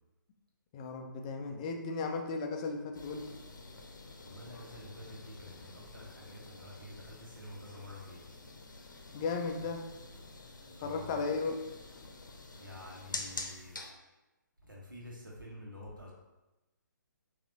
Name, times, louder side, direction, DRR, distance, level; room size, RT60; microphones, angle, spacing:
voice 1, 0.7-3.3 9.1-9.9 10.8-11.5, left 4 dB, 20° left, 3 dB, 0.4 m, -35 dB
sound 1, 2.9-13.9, left 3 dB, 70° left, 0.7 m, -47 dB
voice 2, 4.2-8.3 9.6-9.7 10.7-11.2 12.6-13.8 14.6-16.1, left 1 dB, 80° right, -3 dB, 1.4 m, -49 dB
6.3 x 2.7 x 2.9 m, 1.0 s
figure-of-eight pair, 135°, 11 cm